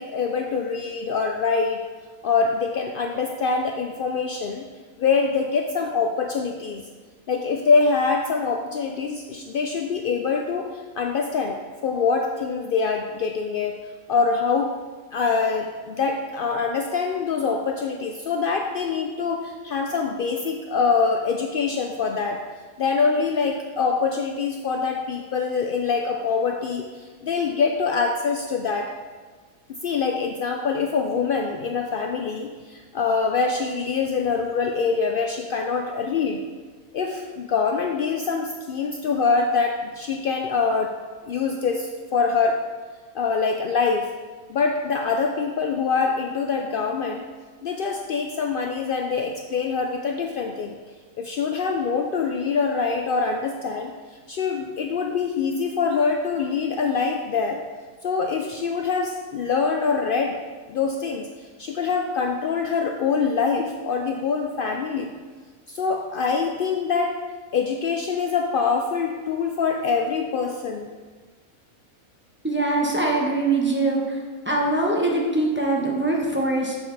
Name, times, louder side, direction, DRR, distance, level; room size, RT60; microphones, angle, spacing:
voice 1, 0.0-1.8 2.2-4.6 5.0-6.9 7.3-11.6 11.8-13.8 14.1-14.7 15.1-22.4 22.8-28.9 29.7-36.4 36.9-40.9 41.2-42.6 43.1-44.1 44.5-47.2 47.6-50.8 51.2-53.9 54.3-57.6 58.0-60.4 60.7-61.3 61.6-65.2 65.7-67.2 67.5-70.9, left 5 dB, 80° left, 3 dB, 0.4 m, -24 dB
voice 2, 72.4-74.0 74.5-76.8, right 2 dB, 10° right, -3 dB, 0.9 m, -22 dB
6.9 x 6.6 x 3.9 m, 1.4 s
omnidirectional pair, 1.5 m